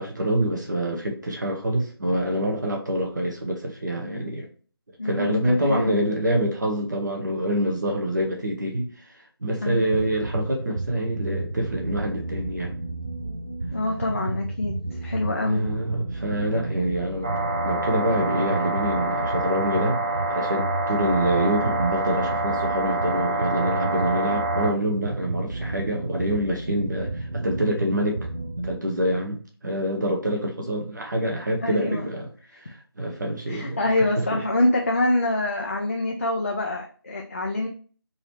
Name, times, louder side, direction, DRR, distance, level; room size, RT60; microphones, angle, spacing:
voice 1, 0.0-4.5 5.0-12.7 15.4-20.0 20.3-28.3 28.6-33.9 34.2-34.4, right 1 dB, 50° right, 0 dB, 1.0 m, -26 dB
voice 2, 5.0-5.4 5.7-6.0 9.6-10.0 13.7-15.7 31.6-32.1 33.5-37.7, left 2 dB, 35° left, 0 dB, 0.5 m, -25 dB
sound 1, 9.9-28.7, right 2 dB, 80° right, 0.8 m, -32 dB
sound 2, 17.2-24.7, right 2 dB, 20° right, 0.5 m, -27 dB
3.9 x 2.9 x 3.1 m, 0.41 s
figure-of-eight pair, 160°, 13 cm